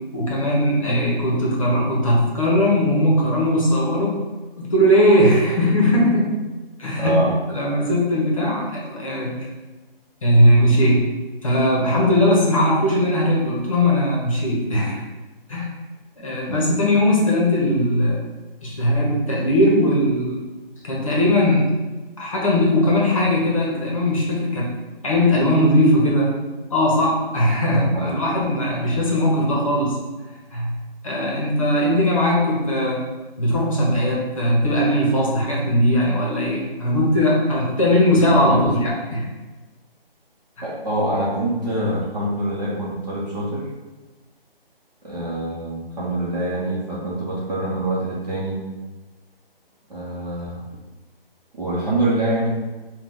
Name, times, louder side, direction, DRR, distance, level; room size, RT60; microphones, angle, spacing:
voice 1, 0.1-4.2 4.5-6.3 6.8-7.2 7.5-9.3 10.2-11.1 11.4-15.0 15.5-15.7 16.2-18.2 18.6-20.4 20.8-21.8 22.2-24.7 25.0-26.3 26.7-30.0 30.5-30.7 31.0-33.1 33.4-39.3 40.6-40.7, equal, 35° left, -3 dB, 0.9 m, -19 dB
voice 2, 7.0-7.3 16.5-16.6 27.7-28.4 38.3-38.7 40.6-43.7 45.0-48.6 49.9-50.6 51.5-52.5, right 1 dB, 45° right, -6 dB, 0.9 m, -25 dB
4.2 x 2.3 x 3.6 m, 1.2 s
hypercardioid pair, 170°, 30 cm